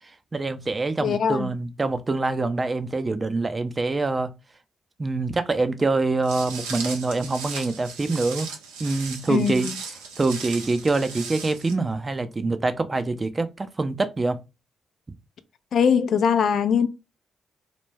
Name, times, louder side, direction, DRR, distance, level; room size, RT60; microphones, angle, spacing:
voice 1, 0.3-4.3 5.0-8.5 8.8-9.7 10.2-14.4, right 3 dB, 30° right, 0.5 m, -25 dB
voice 2, 1.0-1.5 9.3-9.5 15.7-16.9, left 7 dB, 65° left, 0.3 m, -21 dB
Walk footsteps, 6.2-11.7, right 5 dB, 90° right, 0.5 m, -37 dB
2.2 x 2.1 x 3.2 m
hypercardioid pair, 45°, 0 cm